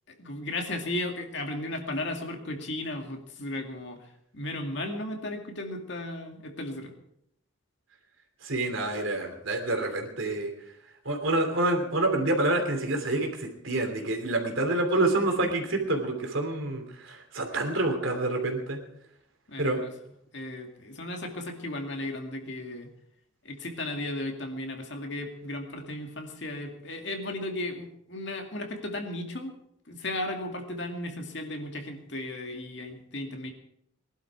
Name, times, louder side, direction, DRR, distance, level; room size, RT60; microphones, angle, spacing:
voice 1, 0.1-4.0 4.3-6.9 19.5-19.9 20.3-22.9 23.4-29.5 29.9-33.5, left 1 dB, 60° left, 3 dB, 2.3 m, -35 dB
voice 2, 8.4-10.5 11.0-18.8 19.6-19.8, right 2 dB, 75° right, 3 dB, 3.0 m, -27 dB
19.5 x 11.5 x 4.8 m, 0.71 s
head